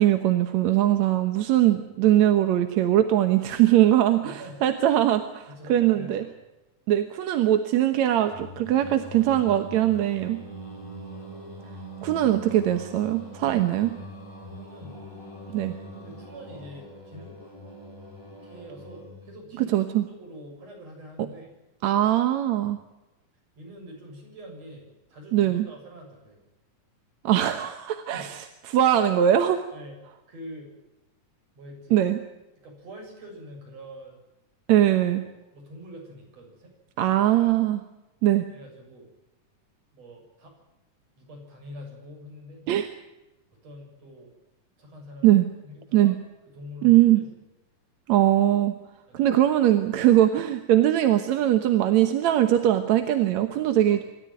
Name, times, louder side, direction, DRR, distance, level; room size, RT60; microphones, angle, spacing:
voice 1, 0.0-6.2 6.9-10.4 12.0-13.9 15.5-15.8 19.6-20.0 21.8-22.8 25.3-25.7 27.2-28.4 28.7-29.6 31.9-32.2 34.7-35.2 37.0-37.8 38.2-38.5 42.7-42.9 45.2-45.5 45.9-46.2 46.8-47.2 48.1-48.7 49.1-54.0, right 12 dB, 65° right, 8 dB, 2.2 m, -21 dB
voice 2, 4.0-4.6 5.5-6.4 14.6-15.0 16.0-17.4 18.4-21.5 23.6-26.4 28.0-28.3 29.7-30.0 30.3-30.7 31.5-32.0 32.6-34.2 35.0-36.7 37.0-37.5 38.5-39.1 39.9-40.5 41.2-42.7 43.6-44.3 44.8-46.2 46.5-47.3 49.1-49.3 53.8-54.0, equal, 50° right, 1 dB, 8.2 m, -45 dB
Singing, 8.3-19.4, right 1 dB, 10° left, 4.4 m, -42 dB
26.5 x 13.5 x 9.2 m, 1.0 s
omnidirectional pair, 3.8 m